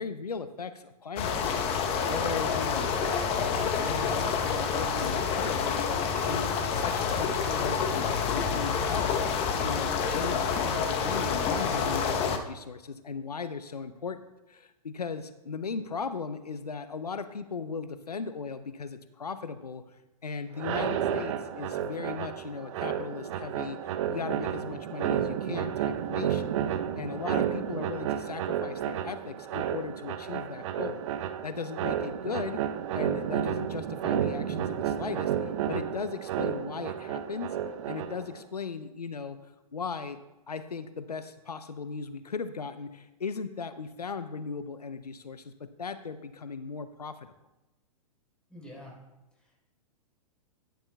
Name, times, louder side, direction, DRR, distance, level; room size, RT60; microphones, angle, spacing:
voice 1, 0.0-9.1 9.6-14.2 14.5-31.0 31.4-32.6 32.9-37.6 37.9-47.3, left 5 dB, 90° left, 12 dB, 0.5 m, -37 dB
sound 1, 1.2-12.4, left 6 dB, 30° left, 0.8 m, -28 dB
sound 2, 20.5-38.4, right 9 dB, 50° right, 0.7 m, -31 dB
voice 2, 48.5-48.9 49.4-49.7, left 1 dB, 5° left, -3 dB, 3.8 m, -47 dB
11.5 x 11.5 x 2.2 m, 1.0 s
figure-of-eight pair, 110°, 20 cm